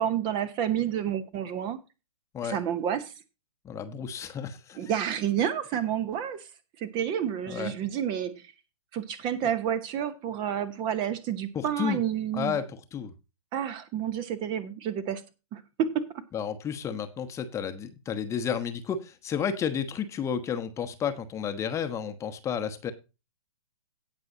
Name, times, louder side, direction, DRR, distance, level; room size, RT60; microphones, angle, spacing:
voice 1, 0.0-1.8 2.4-3.1 4.8-6.4 6.8-8.4 8.9-12.6 13.5-15.2 15.5-16.1, right 9 dB, 25° right, 13 dB, 1.0 m, -29 dB
voice 2, 3.6-4.9 7.5-7.7 11.5-12.0 12.3-13.1 16.3-22.9, left 7 dB, 15° left, 9 dB, 1.1 m, -32 dB
17.5 x 6.1 x 2.8 m, 0.28 s
figure-of-eight pair, 120°, 18 cm